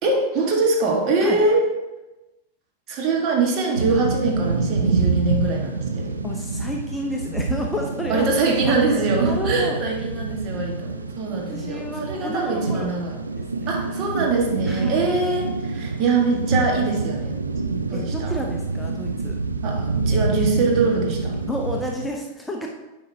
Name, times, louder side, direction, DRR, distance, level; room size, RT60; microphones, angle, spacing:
voice 1, 0.0-1.7 2.9-6.1 8.1-13.2 13.7-17.4 17.9-18.3 19.6-21.3, right 3 dB, 35° right, 0 dB, 1.4 m, -23 dB
sound 1, 3.7-22.1, right 4 dB, 75° right, 0.4 m, -26 dB
voice 2, 6.2-8.3 8.7-8.8 9.2-9.8 11.5-13.0 13.4-13.7 14.7-15.1 17.9-19.4 21.5-22.7, left 1 dB, 5° left, 0 dB, 0.7 m, -30 dB
9.9 x 5.0 x 2.7 m, 1.1 s
figure-of-eight pair, 90°, 0 cm